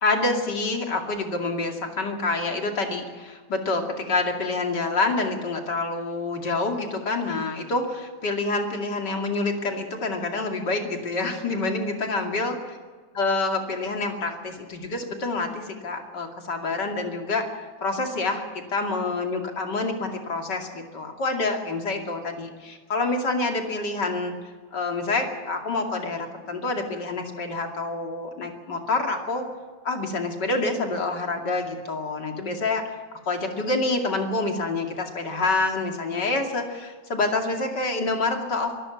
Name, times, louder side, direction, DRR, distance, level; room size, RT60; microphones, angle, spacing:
voice 1, 0.0-12.7 13.2-17.5 17.8-18.4 18.7-24.3 24.7-29.5 29.8-32.9 33.3-38.7, left 3 dB, 80° left, 3 dB, 3.2 m, -27 dB
24.0 x 13.5 x 8.5 m, 1.5 s
omnidirectional pair, 1.8 m